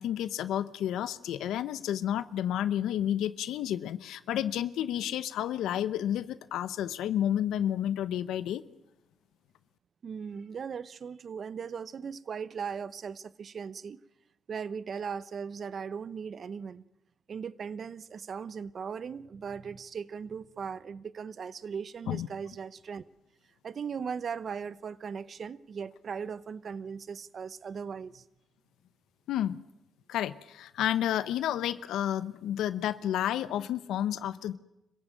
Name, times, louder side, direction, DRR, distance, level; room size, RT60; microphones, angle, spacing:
voice 1, 0.0-8.6 22.1-22.3 29.3-29.6 30.1-34.6, left 11 dB, 80° left, 14 dB, 0.8 m, -31 dB
voice 2, 10.0-14.0 14.5-16.8 17.3-23.0 23.6-28.2, right 6 dB, 45° right, 17 dB, 0.8 m, -38 dB
26.0 x 15.5 x 9.1 m, 0.92 s
cardioid pair, 100°, 0 cm